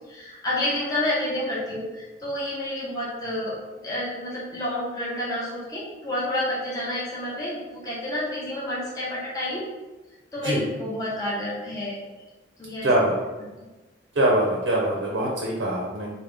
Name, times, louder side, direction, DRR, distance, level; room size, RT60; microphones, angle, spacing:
voice 1, 0.1-3.6 3.8-9.7 10.3-12.0 12.6-12.9, left 1 dB, 20° left, -8 dB, 0.8 m, -29 dB
voice 2, 12.8-13.2 14.1-16.1, right 1 dB, 90° right, -3 dB, 0.6 m, -23 dB
3.5 x 2.2 x 3.3 m, 1.2 s
head